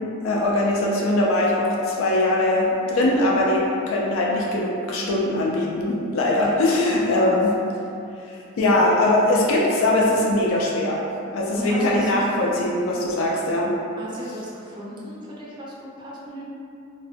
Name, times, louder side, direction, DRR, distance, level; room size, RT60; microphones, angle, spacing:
voice 1, 0.0-7.5 8.3-11.0 11.3-13.7, left 1 dB, 80° left, -3 dB, 0.4 m, -21 dB
voice 2, 7.1-7.4 11.6-12.1 13.2-13.3 14.0-16.4, right 1 dB, 25° right, -6 dB, 0.3 m, -35 dB
2.4 x 2.1 x 2.6 m, 2.6 s
head